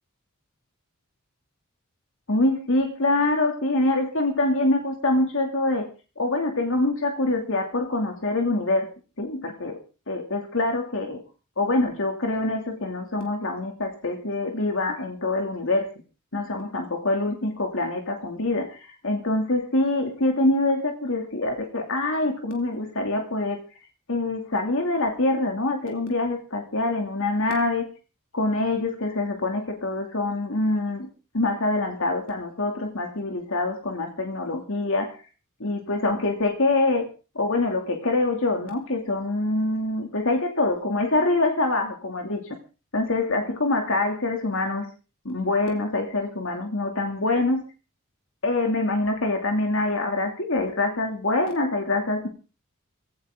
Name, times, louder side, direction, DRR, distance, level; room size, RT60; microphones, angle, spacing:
voice 1, 2.3-5.8 6.2-8.9 9.2-9.8 10.1-11.2 11.6-15.9 16.3-23.6 24.1-27.9 28.3-31.1 31.3-35.1 35.6-37.1 37.3-42.6 42.9-44.9 45.2-47.6 48.4-52.3, left 2 dB, 65° left, 3 dB, 2.7 m, -25 dB
16.5 x 16.5 x 3.8 m, 0.34 s
head